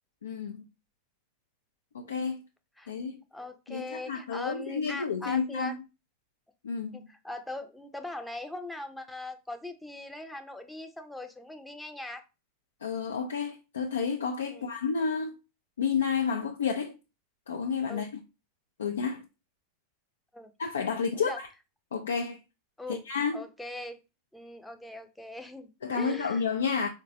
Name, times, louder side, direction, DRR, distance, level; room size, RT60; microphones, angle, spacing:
voice 1, 0.2-0.6 1.9-2.4 2.9-3.2 3.7-5.7 6.6-7.1 12.8-15.3 15.8-16.9 17.5-18.1 18.8-19.2 20.6-21.5 21.9-22.4 22.9-23.4 25.8-26.9, left 6 dB, 80° left, 0.3 m, -30 dB
voice 2, 3.3-5.7 6.9-12.2 14.5-14.7 17.9-18.1 20.3-20.5 21.1-21.4 22.8-23.0 23.3-24.0 24.3-26.4, left 2 dB, 5° left, 0.5 m, -41 dB
3.8 x 2.1 x 2.6 m
hypercardioid pair, 90°, 0 cm